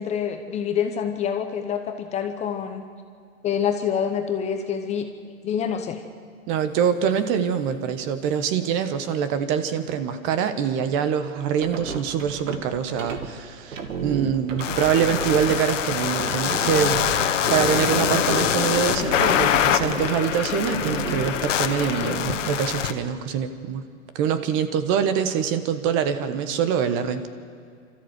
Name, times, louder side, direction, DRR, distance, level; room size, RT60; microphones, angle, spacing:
voice 1, 0.0-2.9 3.4-6.0, left 8 dB, 15° left, 6 dB, 0.8 m, -27 dB
voice 2, 6.5-17.0 17.5-23.8 24.1-27.3, right 8 dB, 30° right, 10 dB, 1.2 m, -24 dB
sound 1, 11.4-13.3 13.7-18.6 19.0-19.6 19.9-20.2 20.6-21.9, right 5 dB, 75° right, 2.5 m, -32 dB
sound 2, 14.6-22.9, left 9 dB, 65° left, 1.5 m, -24 dB
25.5 x 14.0 x 8.2 m, 2.3 s
hypercardioid pair, 140°, 40 cm